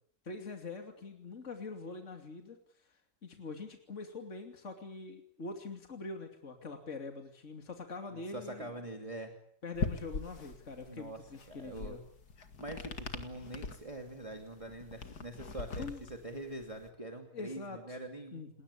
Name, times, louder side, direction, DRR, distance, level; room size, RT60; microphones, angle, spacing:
voice 1, 0.2-8.7 9.6-12.0 15.8-16.0 17.3-18.0 18.3-18.5, left 3 dB, 45° left, 4 dB, 3.1 m, -44 dB
voice 2, 8.1-9.3 10.9-11.2 11.5-12.0 12.6-18.5, right 1 dB, 20° right, 4 dB, 2.8 m, -44 dB
sound 1, 9.7-16.9, left 4 dB, 70° left, 2.5 m, -42 dB
29.5 x 20.5 x 8.5 m, 0.62 s
omnidirectional pair, 1.7 m